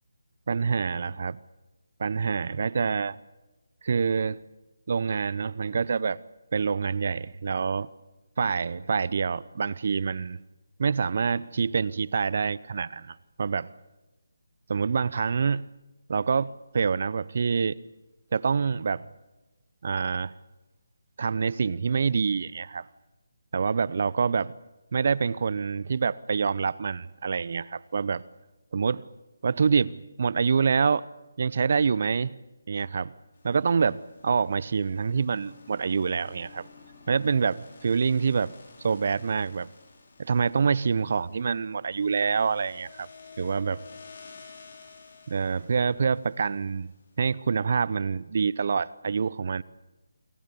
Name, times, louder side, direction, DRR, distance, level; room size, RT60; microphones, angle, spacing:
voice 1, 0.5-1.4 2.0-3.2 3.8-4.4 4.9-6.2 6.5-7.9 8.4-10.4 10.8-13.7 14.7-15.6 16.1-17.8 18.3-19.0 19.8-20.3 21.2-22.9 23.5-24.5 24.9-28.2 28.7-29.0 29.4-31.0 31.4-32.3 32.7-33.1 33.4-36.7 37.1-38.5 38.8-39.7 40.2-43.1 43.4-43.8 45.3-46.9 47.2-49.6, right 5 dB, 50° right, 0.8 m, -26 dB
sound 1, 33.3-47.5, left 5 dB, 50° left, 6.2 m, -52 dB
28.5 x 23.0 x 7.0 m
figure-of-eight pair, 160°, 0 cm